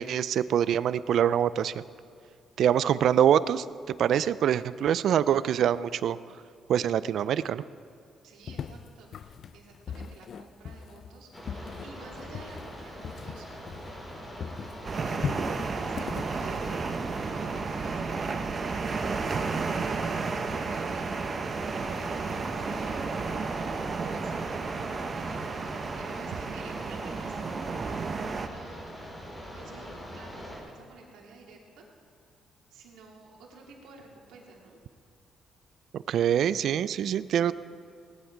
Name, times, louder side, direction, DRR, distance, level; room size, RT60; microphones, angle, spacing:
voice 1, 0.0-1.8 2.6-3.6 4.0-6.2 6.7-7.6 35.9-37.5, right 9 dB, 70° right, 16 dB, 0.4 m, -24 dB
voice 2, 8.2-13.5 14.7-15.4 15.8-16.6 17.3-18.3 18.9-21.1 21.8-29.1 29.4-31.8 32.7-34.8, right 3 dB, 85° right, -2 dB, 2.7 m, -51 dB
sound 1, 8.5-14.1 14.4-17.3, left 7 dB, 60° left, 0.5 m, -39 dB
sound 2, 11.3-30.6, equal, 20° left, 4.2 m, -42 dB
sound 3, 14.8-28.5, right 4 dB, 40° right, 0.9 m, -32 dB
18.5 x 10.5 x 4.7 m, 2.3 s
cardioid pair, 90°, 0 cm